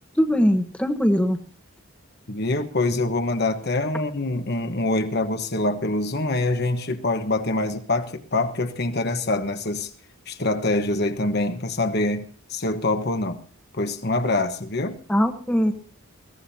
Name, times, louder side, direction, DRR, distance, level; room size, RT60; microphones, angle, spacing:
voice 1, 0.2-1.4 15.1-15.7, equal, 5° left, 1.2 m, -21 dB
voice 2, 2.3-9.9 10.3-13.4 13.7-15.0, left 2 dB, 50° left, 1.2 m, -25 dB
21.5 x 16.5 x 2.8 m
head